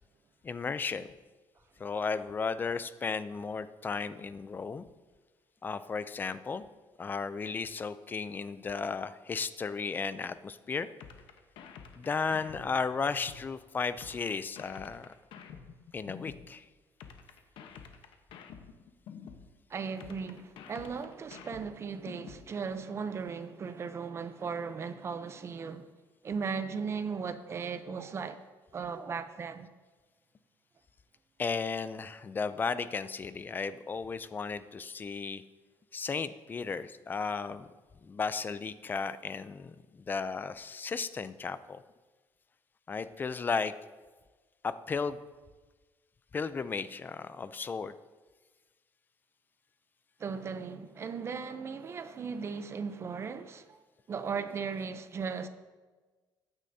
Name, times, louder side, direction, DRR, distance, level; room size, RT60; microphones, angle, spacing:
voice 1, 0.4-1.1 1.8-4.9 5.6-6.6 7.0-10.9 12.0-15.1 15.9-16.6 31.4-35.4 35.9-37.7 38.0-41.8 42.9-43.7 44.6-45.2 46.3-47.9, left 5 dB, 20° left, 0.4 m, -34 dB
sound 1, 11.0-13.5 14.0-16.5 17.0-19.5 20.0-22.5, left 7 dB, 80° left, 1.0 m, -49 dB
voice 2, 19.7-25.9 26.2-28.4 28.7-29.7 50.2-53.8 54.1-55.5, right 5 dB, 30° right, 0.6 m, -37 dB
15.0 x 9.9 x 2.7 m
cardioid pair, 160°, 9 cm